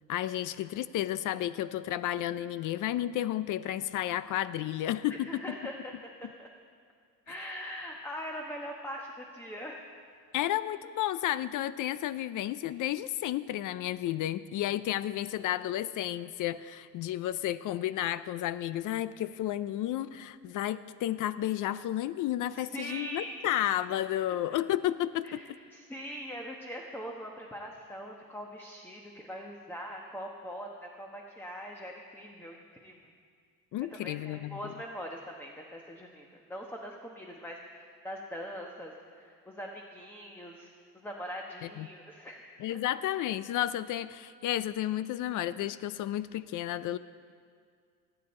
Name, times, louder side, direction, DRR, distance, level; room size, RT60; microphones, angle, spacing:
voice 1, 0.1-5.6 7.3-7.5 10.3-25.4 33.7-34.6 41.6-41.9 42.6-47.0, left 13 dB, 60° left, 16 dB, 0.5 m, -32 dB
voice 2, 5.1-6.5 7.3-9.9 22.6-23.4 24.3-24.6 25.2-32.9 33.9-42.4 42.7-42.8, equal, 5° left, 1 dB, 1.1 m, -42 dB
21.0 x 8.9 x 4.3 m, 2.1 s
cardioid pair, 100°, 36 cm